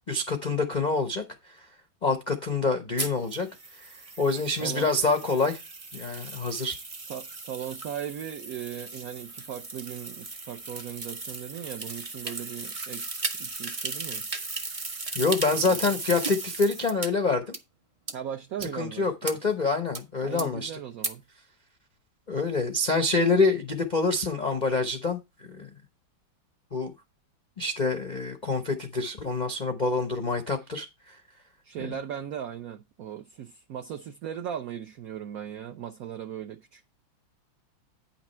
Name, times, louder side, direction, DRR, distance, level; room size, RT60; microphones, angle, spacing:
voice 1, 0.1-1.7 2.0-5.6 5.9-6.8 15.1-17.5 18.7-20.7 22.3-25.7 26.7-26.9 27.6-31.2 31.8-31.9, left 3 dB, 55° left, 0.4 m, -27 dB
sound 1, 3.0-17.1 17.5-17.6 18.1-18.2 18.6-18.7 19.2-19.3 19.9-20.0 20.4-20.5 21.0-21.1, right 3 dB, 45° right, 0.4 m, -36 dB
voice 2, 4.3-4.9 7.0-14.3 15.5-15.8 18.1-19.4 20.2-21.2 31.6-36.8, right 9 dB, 65° right, 0.9 m, -38 dB
9.2 x 5.9 x 4.3 m
omnidirectional pair, 2.1 m